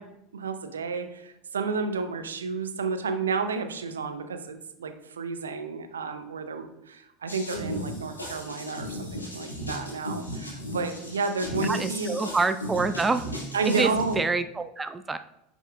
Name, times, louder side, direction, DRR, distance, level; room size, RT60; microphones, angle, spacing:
voice 1, 0.0-12.2 13.5-14.2, right 4 dB, 75° right, 8 dB, 0.6 m, -31 dB
sound 1, 7.3-14.2, equal, 85° left, 1.9 m, -35 dB
voice 2, 11.6-13.3 13.7-15.2, right 3 dB, 15° right, 10 dB, 0.4 m, -27 dB
9.6 x 5.5 x 2.4 m, 0.82 s
figure-of-eight pair, 75°, 0 cm